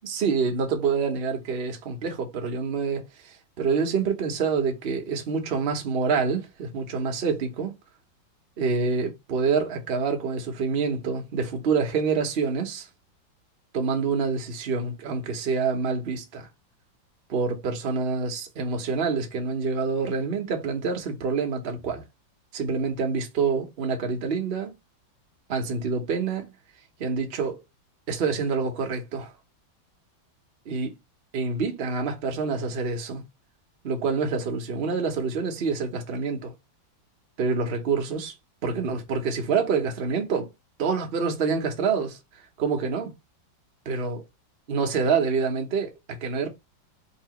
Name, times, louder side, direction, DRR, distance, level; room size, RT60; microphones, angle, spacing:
voice 1, 0.0-7.7 8.6-12.9 13.7-16.5 17.3-22.0 22.5-24.7 25.5-26.5 27.0-27.6 28.1-29.3 30.7-30.9 31.3-33.2 33.8-36.5 37.4-38.3 38.6-40.5 40.8-42.2 42.6-43.1 43.9-44.2 44.7-46.5, right 5 dB, 45° right, 0.8 m, -27 dB
4.1 x 2.8 x 2.9 m
omnidirectional pair, 2.1 m